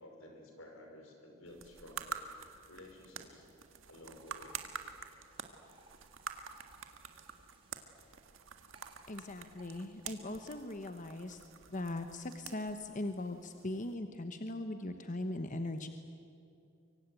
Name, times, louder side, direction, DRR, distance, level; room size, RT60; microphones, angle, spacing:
voice 1, 0.0-2.2 2.7-3.5 3.8-4.6, left 1 dB, 85° left, 3 dB, 5.4 m, -53 dB
sound 1, 1.5-13.9, right 6 dB, 70° right, 1.8 m, -48 dB
sound 2, 3.7-8.3 8.6-10.6, right 3 dB, 25° right, 3.0 m, -64 dB
voice 2, 9.1-11.4 11.7-15.9, left 1 dB, 40° left, 7 dB, 1.1 m, -40 dB
24.0 x 24.0 x 9.2 m, 2.6 s
head